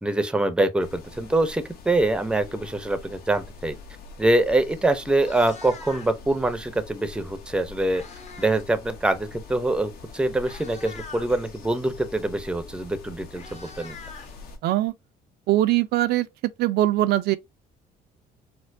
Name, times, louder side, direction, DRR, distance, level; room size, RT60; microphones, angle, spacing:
voice 1, 0.0-3.7 4.2-8.0 8.4-14.0, right 2 dB, 5° right, 0.5 m, -24 dB
sound 1, 0.8-14.6, left 3 dB, 70° left, 1.1 m, -44 dB
Meow, 5.2-6.3 7.4-8.7 9.0-9.3 10.0-10.1 10.4-11.3 12.6-12.7 13.0-14.9, left 4 dB, 40° left, 0.9 m, -44 dB
voice 2, 14.6-14.9 15.5-16.3 16.6-17.4, right 14 dB, 70° right, 0.4 m, -21 dB
4.3 x 2.0 x 2.5 m
cardioid pair, 110°, 17 cm